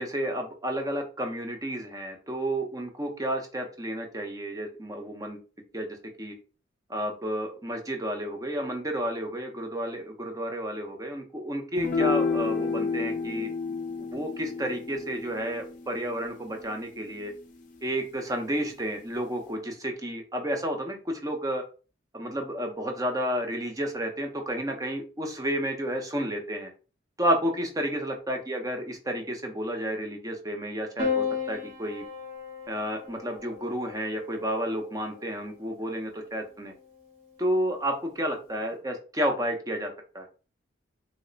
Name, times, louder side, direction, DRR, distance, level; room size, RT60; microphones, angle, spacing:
voice 1, 0.0-5.4 5.7-5.9 6.2-6.3 6.9-13.5 14.1-17.3 17.8-21.6 22.1-26.7 27.2-32.0 32.7-36.7 37.4-40.3, equal, 20° right, 3 dB, 0.6 m, -31 dB
sound 1, 11.8-18.3, left 5 dB, 40° left, 0.5 m, -32 dB
Piano, 31.0-35.5 36.7-37.3, left 6 dB, 50° right, 1.1 m, -34 dB
3.1 x 2.1 x 3.7 m, 0.36 s
head